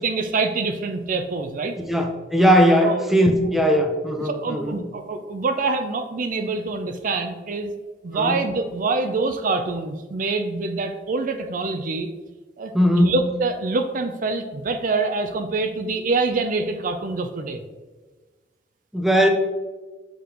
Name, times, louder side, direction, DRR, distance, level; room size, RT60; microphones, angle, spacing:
voice 1, 0.0-1.7 2.8-3.0 4.3-7.7 8.0-12.1 12.6-17.6, right 3 dB, 50° right, 7 dB, 0.5 m, -25 dB
voice 2, 1.8-4.8 8.1-8.4 12.7-13.2 18.9-19.3, equal, ahead, 2 dB, 0.6 m, -19 dB
6.5 x 5.1 x 2.9 m, 1.3 s
head